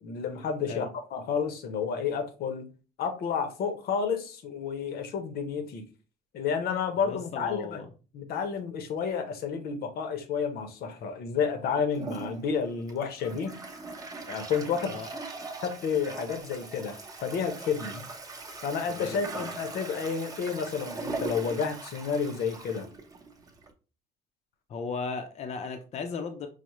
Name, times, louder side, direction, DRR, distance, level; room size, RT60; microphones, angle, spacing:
voice 1, 0.0-2.7 3.0-5.8 6.3-7.8 8.1-13.6 14.3-15.0 15.6-18.1 18.6-22.9, left 6 dB, 65° left, 0.8 m, -30 dB
voice 2, 7.0-7.9 14.9-15.1 18.9-19.5 24.7-26.5, left 4 dB, 40° left, 0.5 m, -36 dB
Toilet flush, 11.9-23.7, right 3 dB, 20° right, 0.7 m, -40 dB
4.9 x 2.0 x 3.0 m
cardioid pair, 110°, 17 cm